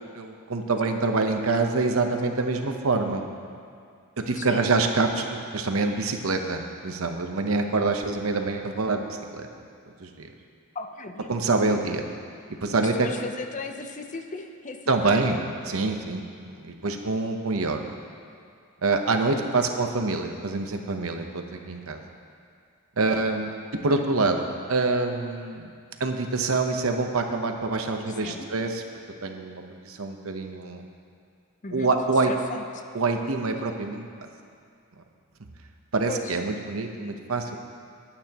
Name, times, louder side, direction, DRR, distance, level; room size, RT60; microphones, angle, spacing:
voice 1, 0.2-3.3 4.3-9.0 9.3-9.5 10.0-10.3 11.3-12.0 12.6-13.1 14.9-15.4 15.7-17.9 18.8-22.0 23.0-23.6 23.8-25.7 26.0-28.8 29.2-30.8 31.7-32.3 32.9-34.1 35.9-37.6, right 3 dB, 70° right, 4 dB, 0.9 m, -26 dB
voice 2, 4.3-4.6 10.7-11.5 12.8-15.5 16.8-17.0 19.6-19.7 23.9-24.0 28.1-28.5 31.6-31.9 32.2-32.8 36.1-36.4, left 3 dB, 35° left, 6 dB, 0.7 m, -37 dB
21.0 x 8.9 x 3.0 m, 2.3 s
head